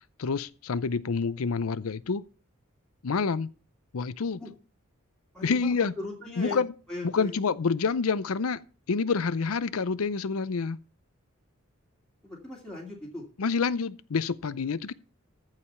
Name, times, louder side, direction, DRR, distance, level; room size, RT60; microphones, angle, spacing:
voice 1, 0.2-2.2 3.0-3.5 3.9-4.4 5.4-5.9 6.4-6.7 7.0-10.8 13.4-14.9, left 5 dB, 90° left, 0.6 m, -28 dB
voice 2, 5.3-6.6 6.9-7.3 12.2-13.2, left 2 dB, 5° left, 2.4 m, -38 dB
14.0 x 4.9 x 6.9 m
head